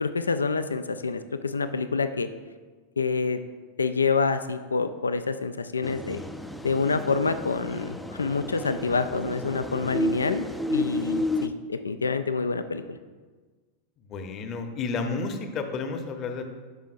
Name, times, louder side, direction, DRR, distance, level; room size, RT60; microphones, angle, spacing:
voice 1, 0.0-2.3 3.0-3.4 3.8-6.2 6.6-13.0, left 4 dB, 75° left, 11 dB, 0.3 m, -27 dB
sound 1, 5.8-11.5, left 1 dB, 5° left, 0.4 m, -31 dB
voice 2, 14.1-16.4, left 4 dB, 30° left, 6 dB, 0.8 m, -31 dB
11.0 x 5.3 x 2.5 m, 1.4 s
figure-of-eight pair, 90°, 0 cm